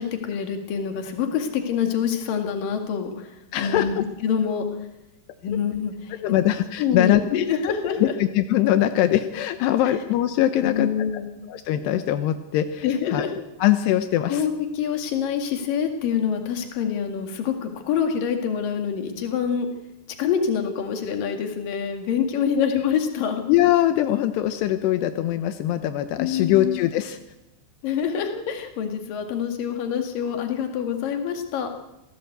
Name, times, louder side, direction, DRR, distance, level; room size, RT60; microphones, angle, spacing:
voice 1, 0.0-4.6 5.4-6.2 6.8-8.1 10.6-11.3 12.8-13.3 14.3-19.7 20.2-23.4 26.2-26.8 27.8-31.7, left 7 dB, 60° left, 5 dB, 3.6 m, -26 dB
voice 2, 3.5-4.0 6.2-7.5 8.0-10.9 11.5-13.3 13.6-14.5 22.6-22.7 23.5-27.2, left 13 dB, 85° left, 9 dB, 3.0 m, -22 dB
27.5 x 17.5 x 8.0 m, 0.97 s
omnidirectional pair, 4.7 m